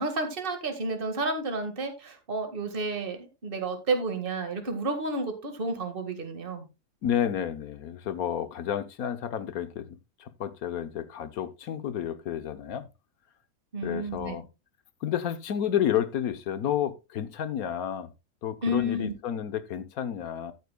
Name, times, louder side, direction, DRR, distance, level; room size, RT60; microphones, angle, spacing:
voice 1, 0.0-6.6 13.7-14.4 18.6-19.1, right 2 dB, 35° right, 2.0 m, -31 dB
voice 2, 7.0-12.9 13.8-14.4 15.0-18.1 18.4-20.5, left 9 dB, 70° left, 1.3 m, -31 dB
13.5 x 9.2 x 2.3 m
omnidirectional pair, 1.7 m